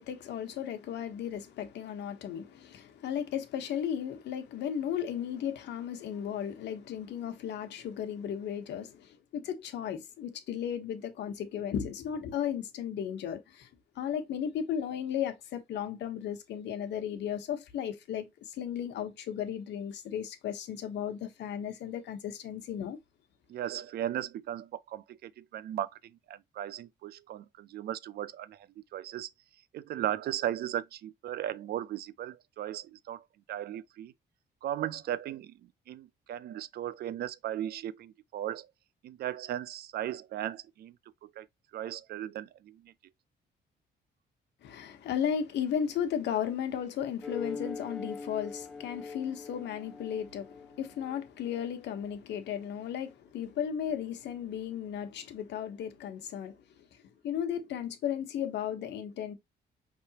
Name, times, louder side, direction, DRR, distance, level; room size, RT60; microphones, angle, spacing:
voice 1, 0.0-13.7 14.0-23.0 44.6-56.6 57.2-59.3, left 9 dB, 80° left, 1.0 m, -35 dB
voice 2, 23.5-29.3 29.7-34.1 34.6-38.7 39.0-41.0 41.2-41.5 41.7-42.9, right 11 dB, 65° right, 0.4 m, -37 dB
sound 1, 47.2-52.2, left 4 dB, ahead, 0.6 m, -42 dB
5.5 x 3.4 x 2.8 m
cardioid pair, 145°, 18 cm